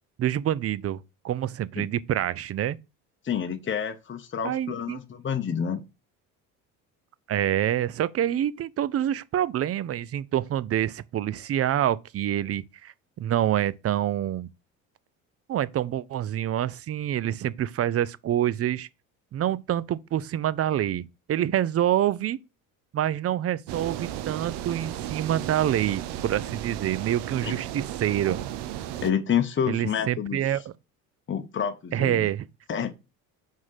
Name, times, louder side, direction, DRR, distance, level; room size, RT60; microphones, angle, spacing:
voice 1, 0.2-2.8 4.4-5.0 7.3-14.5 15.5-18.9 19.3-22.4 22.9-28.4 29.7-30.7 31.9-32.5, right 11 dB, 35° right, 0.5 m, -27 dB
voice 2, 3.2-5.8 27.4-27.6 29.0-30.4 31.3-32.3 32.7-32.9, left 8 dB, 30° left, 1.0 m, -28 dB
sound 1, 23.7-29.1, right 12 dB, 70° right, 0.8 m, -34 dB
4.9 x 3.7 x 5.6 m
hypercardioid pair, 70°, 42 cm